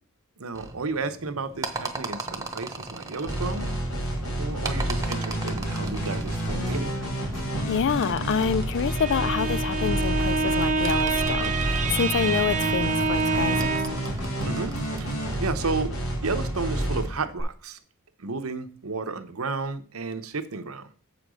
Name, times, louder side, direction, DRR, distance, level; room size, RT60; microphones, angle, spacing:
voice 1, 0.4-3.7 4.4-7.1 14.4-15.9 16.2-17.8 18.2-20.9, right 4 dB, 85° right, 0.9 m, -32 dB
sound 1, 0.5-15.4, right 2 dB, 15° right, 1.0 m, -40 dB
sound 2, 3.3-17.4, right 1 dB, 80° left, 2.8 m, -29 dB
voice 2, 7.7-13.8, left 7 dB, 60° left, 0.4 m, -27 dB
Bowed string instrument, 8.7-14.1, right 4 dB, 35° right, 0.7 m, -27 dB
7.6 x 5.1 x 6.2 m
head